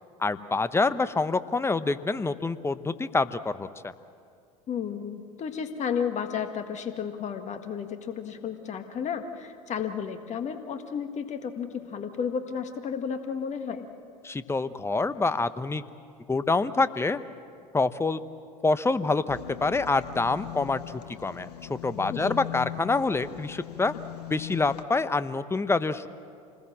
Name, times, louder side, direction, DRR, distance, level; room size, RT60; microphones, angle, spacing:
voice 1, 0.2-3.9 14.2-15.8 16.3-17.2 17.7-18.2 18.6-23.9 24.3-26.1, left 3 dB, 15° left, 13 dB, 1.0 m, -26 dB
voice 2, 4.7-13.9 22.1-22.4, left 7 dB, 35° left, 7 dB, 1.7 m, -32 dB
sound 1, 19.3-24.8, left 13 dB, 85° left, 1.2 m, -40 dB
27.0 x 20.0 x 7.4 m, 2.3 s
hypercardioid pair, 80°, 20 cm